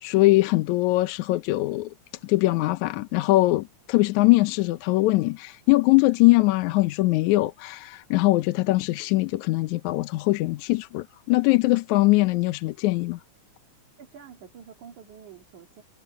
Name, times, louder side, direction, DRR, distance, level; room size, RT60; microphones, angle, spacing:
voice 1, 0.0-1.9 2.2-13.2, left 19 dB, 80° left, 2.1 m, -22 dB
voice 2, 14.0-15.8, right 7 dB, 85° right, 3.9 m, -47 dB
omnidirectional pair, 3.4 m